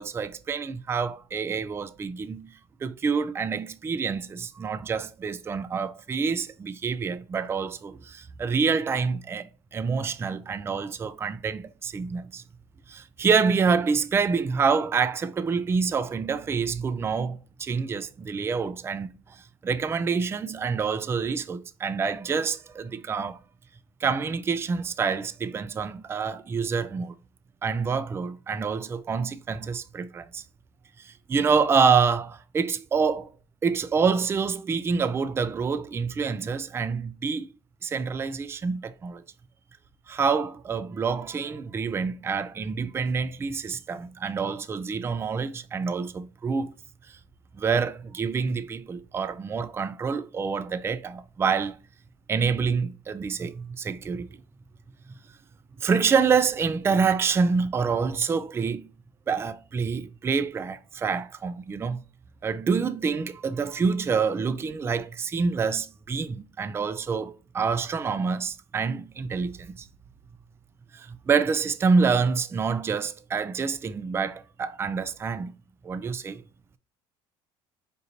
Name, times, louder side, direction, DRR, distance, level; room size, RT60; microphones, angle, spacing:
voice 1, 0.0-2.5 2.8-12.4 12.9-23.4 24.0-27.1 27.6-30.4 31.0-33.3 33.6-37.5 37.8-39.2 40.1-46.7 47.6-51.8 52.3-54.4 55.8-58.9 59.3-62.0 62.4-69.9 70.9-75.5 75.8-76.4, right 5 dB, 20° right, 0.3 m, -27 dB
5.1 x 2.6 x 2.8 m
supercardioid pair, 105°, 12 cm